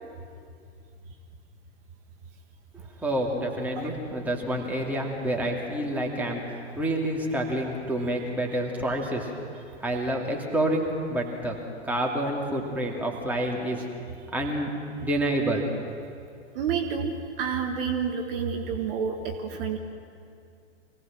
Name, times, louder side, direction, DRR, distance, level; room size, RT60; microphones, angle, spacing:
voice 1, 3.0-9.3 9.8-11.5 11.8-13.8 14.3-14.7 15.0-15.7, right 1 dB, 5° right, -1 dB, 2.9 m, -28 dB
voice 2, 16.5-19.8, right 6 dB, 50° right, 4 dB, 1.8 m, -29 dB
25.0 x 17.5 x 6.2 m, 2.4 s
figure-of-eight pair, 100°, 35 cm